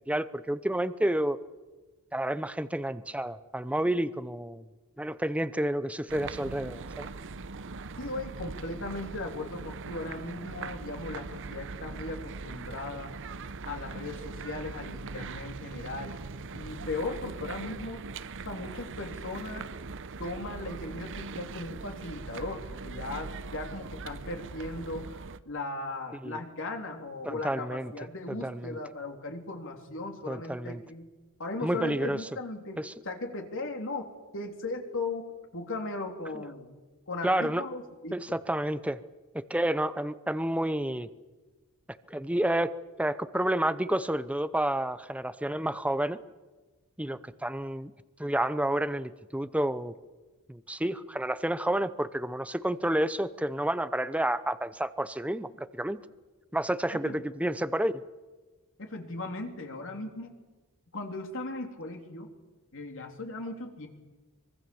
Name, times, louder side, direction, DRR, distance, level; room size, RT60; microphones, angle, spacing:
voice 1, 0.1-1.4 2.1-4.6 5.0-7.1 26.2-26.4 27.2-27.9 28.3-28.8 30.3-30.8 31.6-32.2 32.8-32.9 37.2-37.6 38.1-39.0 39.3-41.1 42.1-42.7 43.0-46.2 47.0-47.9 48.2-49.9 50.5-56.0 56.5-58.0, right 1 dB, 5° right, 13 dB, 0.7 m, -30 dB
sound 1, 6.1-25.4, right 4 dB, 60° right, 0.8 m, -41 dB
voice 2, 8.0-13.1 13.7-16.2 16.5-18.0 18.4-19.7 20.2-31.1 31.4-34.1 34.3-35.2 35.5-36.7 37.1-38.4 56.9-57.2 58.8-60.4 60.9-62.3 62.7-63.9, left 2 dB, 60° left, 3 dB, 3.5 m, -37 dB
24.5 x 23.5 x 7.1 m, 1.2 s
head